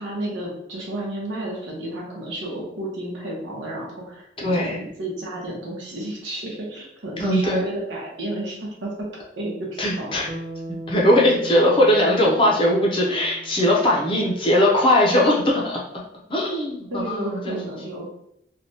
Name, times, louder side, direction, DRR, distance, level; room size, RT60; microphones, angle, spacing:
voice 1, 0.0-8.9 9.4-10.2 16.9-18.1, right 1 dB, 90° right, -3 dB, 0.9 m, -32 dB
voice 2, 4.4-4.8 7.2-7.7 9.8-10.3 10.9-15.8 16.3-17.6, left 1 dB, 30° left, -2 dB, 0.5 m, -19 dB
Bass guitar, 10.3-14.7, right 1 dB, 60° right, 0.9 m, -38 dB
3.2 x 2.2 x 2.7 m, 0.74 s
head